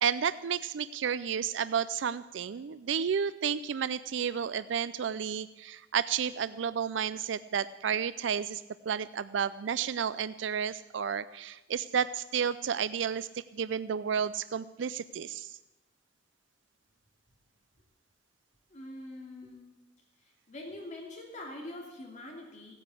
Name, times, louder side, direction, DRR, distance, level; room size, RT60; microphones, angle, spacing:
voice 1, 0.0-15.6, right 7 dB, 75° right, 15 dB, 0.4 m, -32 dB
voice 2, 18.7-19.7 20.5-22.7, left 1 dB, 40° left, 0 dB, 2.7 m, -44 dB
16.5 x 10.0 x 8.3 m, 1.0 s
head